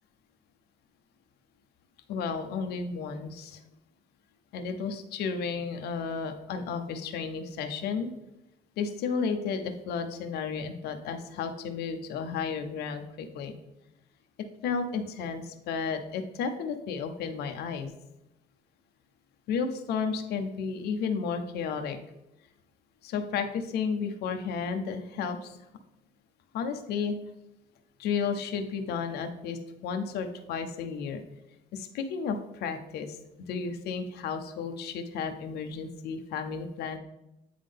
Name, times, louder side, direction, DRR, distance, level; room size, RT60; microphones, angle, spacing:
voice 1, 2.1-3.6 4.5-8.1 8.8-13.6 14.6-17.9 19.5-22.0 23.0-25.6 26.5-27.2 28.0-31.2 31.7-33.2 33.5-37.0, left 5 dB, 75° left, 7 dB, 0.7 m, -33 dB
8.5 x 3.7 x 3.5 m, 0.91 s
cardioid pair, 110°, 17 cm